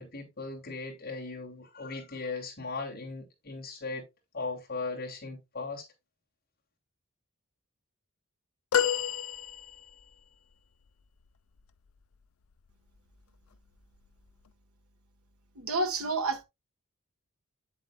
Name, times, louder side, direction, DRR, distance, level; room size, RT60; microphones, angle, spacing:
voice 1, 0.0-4.1 4.3-5.8, left 3 dB, 45° left, 2.8 m, -38 dB
sound 1, 8.7-10.1 12.5-12.7 14.0-14.1, left 9 dB, 75° left, 0.5 m, -29 dB
voice 2, 15.5-16.4, right 3 dB, 80° right, 1.5 m, -29 dB
8.5 x 7.6 x 2.3 m
head